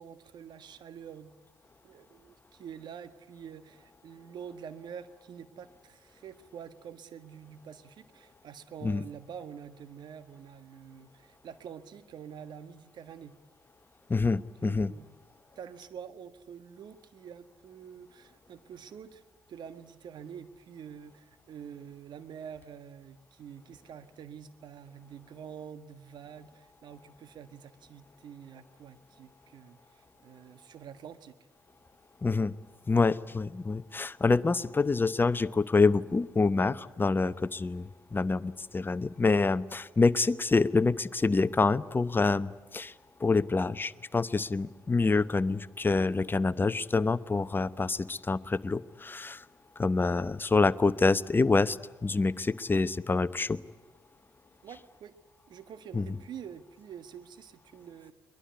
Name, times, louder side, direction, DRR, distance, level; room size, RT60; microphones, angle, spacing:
voice 1, 0.0-1.3 1.8-13.3 14.3-15.1 15.5-19.2 19.5-31.3 54.6-55.1 55.5-58.1, right 8 dB, 60° right, 12 dB, 1.6 m, -47 dB
voice 2, 14.1-14.9 32.2-32.5 32.9-42.9 43.2-49.4 49.8-53.6 55.9-56.1, left 3 dB, 25° left, 15 dB, 0.9 m, -26 dB
23.0 x 21.5 x 9.8 m, 1.3 s
hypercardioid pair, 45°, 9 cm